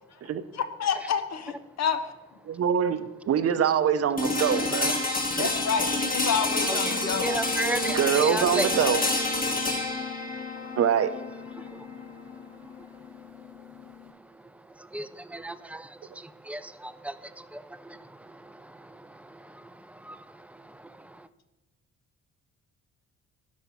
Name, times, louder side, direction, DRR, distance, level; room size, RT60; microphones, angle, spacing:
voice 1, 0.5-2.1 5.4-7.3, left 7 dB, 60° left, 10 dB, 0.8 m, -29 dB
voice 2, 2.5-4.9 5.3-5.5 7.9-9.0 10.8-11.1, right 8 dB, 55° right, 11 dB, 0.7 m, -24 dB
sound 1, 4.2-14.1, left 2 dB, 30° left, 1.6 m, -29 dB
voice 3, 6.6-8.7 10.6-10.8 11.6-21.3, right 1 dB, 5° right, 14 dB, 0.4 m, -37 dB
11.5 x 4.8 x 5.5 m, 1.1 s
cardioid pair, 90°, 30 cm